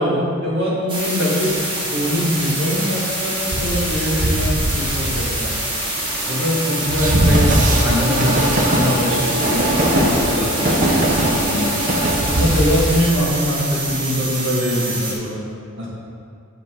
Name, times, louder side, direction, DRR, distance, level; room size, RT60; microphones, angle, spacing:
voice 1, 0.0-5.5 6.3-9.7 9.9-11.7 12.3-15.4 15.8-15.9, equal, 60° right, -6 dB, 2.1 m, -22 dB
sound 1, 0.9-15.1, right 1 dB, 25° right, 1.4 m, -25 dB
Train, 3.5-13.9, right 1 dB, 40° right, 0.9 m, -20 dB
7.5 x 6.9 x 3.9 m, 2.3 s
head